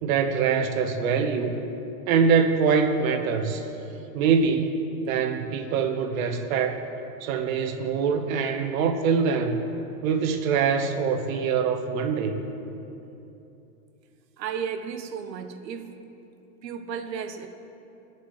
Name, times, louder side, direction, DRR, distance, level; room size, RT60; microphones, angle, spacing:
voice 1, 0.0-1.6 2.1-3.6 4.1-6.8 7.2-9.6 10.0-12.4, right 6 dB, 55° right, 5 dB, 1.2 m, -24 dB
voice 2, 14.4-16.0 16.6-17.5, right 7 dB, 90° right, 8 dB, 1.1 m, -34 dB
21.0 x 7.4 x 3.2 m, 2.9 s
supercardioid pair, 150°, 49 cm